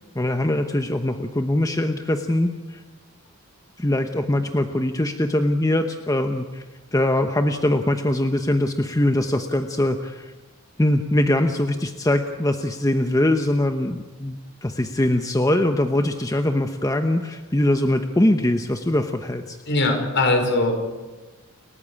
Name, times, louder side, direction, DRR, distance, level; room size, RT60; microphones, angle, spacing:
voice 1, 0.1-2.8 3.8-6.6 6.9-10.3 10.8-19.6, left 1 dB, 15° left, 6 dB, 0.9 m, -22 dB
voice 2, 19.7-20.7, left 2 dB, 55° left, 4 dB, 5.3 m, -20 dB
30.0 x 14.5 x 8.7 m, 1.2 s
head